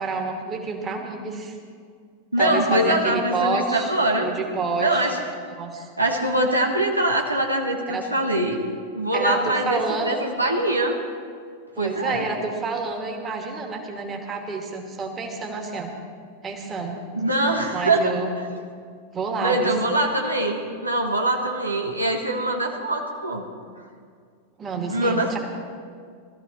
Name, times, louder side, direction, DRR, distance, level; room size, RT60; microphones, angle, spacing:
voice 1, 0.0-1.6 2.4-3.9 4.2-5.1 5.6-5.9 7.9-8.0 9.1-10.3 11.7-15.9 16.4-17.0 17.7-18.3 19.1-19.7 24.6-25.4, right 4 dB, 20° right, 2 dB, 2.2 m, -28 dB
voice 2, 2.3-4.3 4.8-5.2 6.0-8.7 9.0-11.0 11.8-12.3 17.1-18.1 19.4-23.4 24.9-25.4, right 1 dB, 85° right, 2 dB, 1.3 m, -23 dB
19.5 x 14.0 x 4.3 m, 2.1 s
figure-of-eight pair, 90°, 0 cm